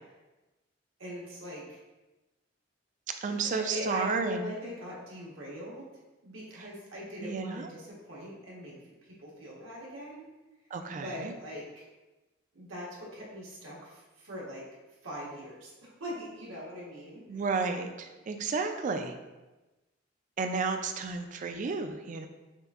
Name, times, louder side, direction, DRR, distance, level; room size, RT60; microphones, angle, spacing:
voice 1, 1.0-1.8 3.3-5.8 6.2-8.7 9.2-10.3 10.9-11.8 12.5-14.6 15.0-17.2, equal, 85° right, -5 dB, 1.2 m, -41 dB
voice 2, 3.2-4.5 6.6-6.7 7.2-7.7 10.7-11.3 17.3-19.1 20.4-22.3, right 4 dB, 40° right, 6 dB, 0.3 m, -32 dB
6.4 x 2.6 x 2.4 m, 1.1 s
head